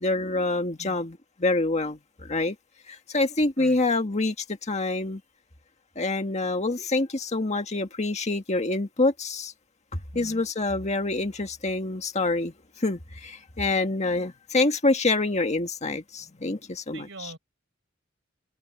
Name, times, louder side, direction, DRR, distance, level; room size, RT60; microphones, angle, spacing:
voice 1, 0.0-2.6 2.9-4.3 4.6-5.2 6.0-9.5 10.2-17.3, left 2 dB, 35° left, 1.7 m, -26 dB
voice 2, 10.1-10.4 16.9-17.4, right 2 dB, 70° right, 6.3 m, -43 dB
open air
head